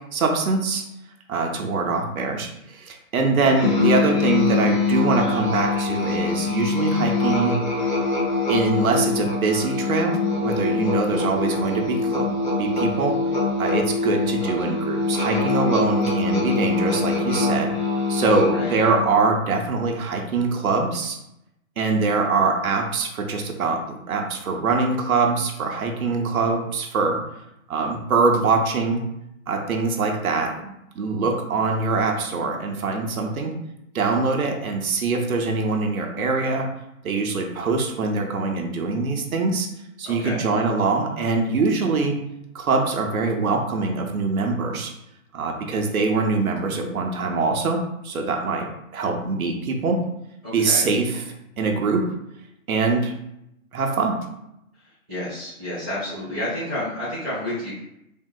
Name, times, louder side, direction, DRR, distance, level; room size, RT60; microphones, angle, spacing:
voice 1, 0.1-0.8 1.3-7.6 8.5-12.3 12.6-13.2 13.6-17.7 18.1-21.2 21.8-27.2 27.7-29.0 29.5-33.5 33.9-36.7 37.0-39.7 40.0-42.2 42.5-44.9 45.3-50.1 50.5-51.2 51.6-52.1 52.7-53.1 53.7-54.2, right 3 dB, 80° right, 2 dB, 0.7 m, -23 dB
voice 2, 3.2-3.5 4.0-4.1 18.5-18.8 40.0-40.4 50.4-50.9 54.7-57.8, left 1 dB, 5° right, -16 dB, 0.8 m, -31 dB
Musical instrument, 3.6-19.1, left 3 dB, 35° left, 1.1 m, -24 dB
3.5 x 2.6 x 2.2 m, 0.81 s
hypercardioid pair, 175°, 42 cm